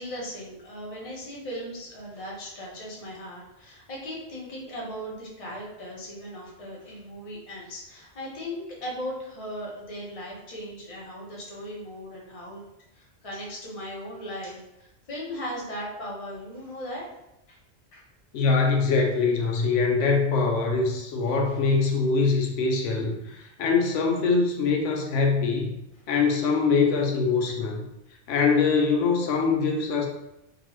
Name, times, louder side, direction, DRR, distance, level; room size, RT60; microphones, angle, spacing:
voice 1, 0.0-12.6 12.9-17.0 17.5-17.6 17.9-18.1 21.5-21.6, equal, 35° left, -4 dB, 0.8 m, -38 dB
voice 2, 18.3-25.8 26.1-27.8 28.3-30.1, left 4 dB, 90° left, 1 dB, 0.9 m, -23 dB
2.8 x 2.3 x 3.0 m, 0.89 s
omnidirectional pair, 1.2 m